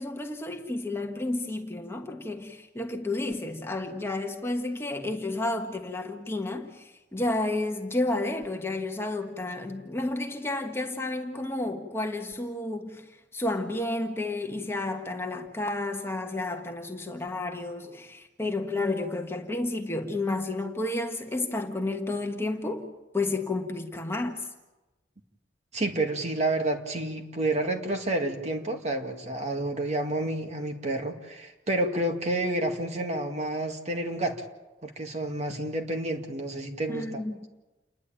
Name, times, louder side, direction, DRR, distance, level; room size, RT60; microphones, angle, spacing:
voice 1, 0.0-24.5 36.9-37.5, left 2 dB, 15° left, 1.5 m, -31 dB
voice 2, 25.7-34.4 34.8-37.2, right 2 dB, 40° right, 2.1 m, -29 dB
29.0 x 11.0 x 8.8 m
head